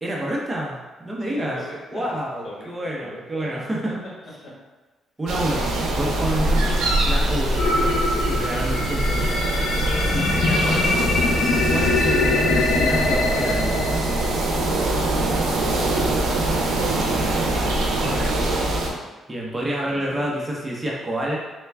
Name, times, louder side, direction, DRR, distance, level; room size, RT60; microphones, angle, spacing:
voice 1, 0.0-1.6 1.9-4.0 5.2-9.3 10.1-11.1 11.7-13.8 17.9-18.8 19.3-21.4, right 1 dB, 20° right, -3 dB, 0.7 m, -29 dB
voice 2, 1.2-2.2 2.4-2.7 3.0-3.5 4.4-4.5 6.4-6.8 14.8-17.1 19.8-20.3, left 1 dB, 60° left, -6 dB, 1.4 m, -40 dB
sound 1, 5.3-18.9, right 1 dB, 90° right, 0.5 m, -23 dB
sound 2, 7.6-14.6, left 3 dB, 75° left, 0.5 m, -23 dB
3.4 x 2.2 x 3.3 m, 1.2 s
cardioid pair, 90°, 0 cm